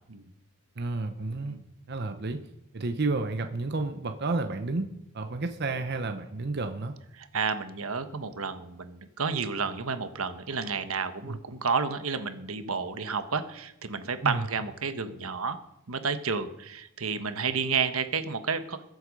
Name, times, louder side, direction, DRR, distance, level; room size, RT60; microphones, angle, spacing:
voice 1, 0.8-1.6 1.9-2.4 2.7-4.9 5.1-6.9 11.3-11.4 14.2-14.4, right 3 dB, 50° right, 7 dB, 0.8 m, -31 dB
voice 2, 7.2-15.6 15.9-18.8, right 5 dB, 80° right, 10 dB, 1.2 m, -31 dB
21.0 x 8.0 x 5.3 m, 0.81 s
head